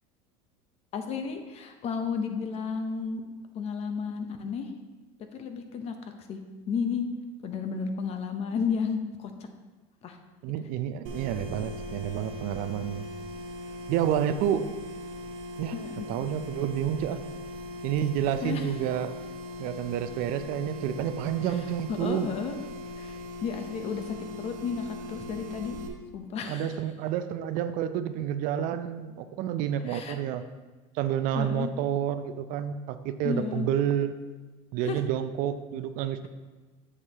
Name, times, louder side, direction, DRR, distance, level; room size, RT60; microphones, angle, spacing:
voice 1, 0.9-3.2 3.5-4.7 5.3-5.9 6.3-6.4 6.7-7.0 7.4-9.3 10.0-10.2 15.7-16.1 18.4-18.7 21.9-22.6 23.0-23.2 23.4-25.8 26.1-26.7 29.9-30.2 31.3-31.7 33.2-33.7 34.8-35.0, left 6 dB, 40° left, 6 dB, 0.8 m, -32 dB
voice 2, 10.4-13.1 13.9-14.6 15.6-15.7 16.1-17.2 17.8-19.1 19.6-22.3 26.5-30.4 30.9-34.1 34.7-36.3, right 10 dB, 55° right, 11 dB, 0.5 m, -29 dB
sound 1, 11.0-25.9, left 1 dB, 80° right, 1.4 m, -40 dB
8.1 x 7.3 x 2.9 m, 1.2 s
supercardioid pair, 135°, 17 cm